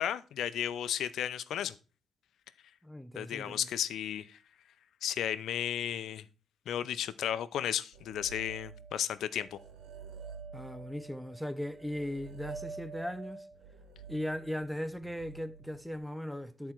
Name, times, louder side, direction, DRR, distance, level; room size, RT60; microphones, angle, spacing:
voice 1, 0.0-1.7 3.2-4.4 5.0-6.2 6.7-9.6, left 10 dB, 70° left, 0.6 m, -34 dB
voice 2, 2.8-3.7 10.5-13.5 14.1-16.7, left 1 dB, ahead, 0.5 m, -38 dB
sound 1, 7.9-9.1 9.4-16.0, right 5 dB, 85° right, 1.1 m, -48 dB
11.0 x 4.3 x 4.5 m
cardioid pair, 160°, 0 cm